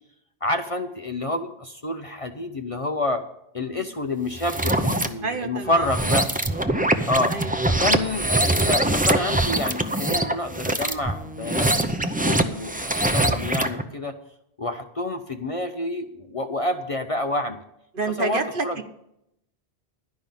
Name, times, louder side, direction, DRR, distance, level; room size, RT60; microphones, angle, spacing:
voice 1, 0.4-3.2 3.5-6.3 7.1-7.3 7.8-14.2 14.6-17.6 18.2-18.8, left 2 dB, 40° left, 6 dB, 0.6 m, -28 dB
sound 1, 4.3-5.1 5.8-13.8, right 1 dB, 10° right, 0.5 m, -23 dB
voice 2, 5.2-5.9 7.3-7.9 17.9-18.8, right 3 dB, 55° right, 6 dB, 1.2 m, -29 dB
12.0 x 5.4 x 9.0 m, 0.79 s
omnidirectional pair, 1.1 m